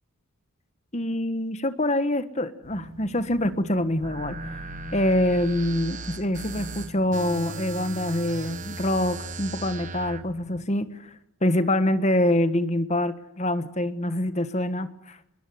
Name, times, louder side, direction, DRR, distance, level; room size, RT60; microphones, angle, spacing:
voice 1, 0.9-4.7 4.9-11.1 11.4-15.2, left 1 dB, 30° left, 11 dB, 1.5 m, -25 dB
sound 1, 2.6-10.6, equal, 65° right, 4.8 m, -45 dB
sound 2, 4.0-10.2, right 3 dB, 35° right, 1.4 m, -37 dB
29.0 x 21.5 x 9.5 m, 0.79 s
head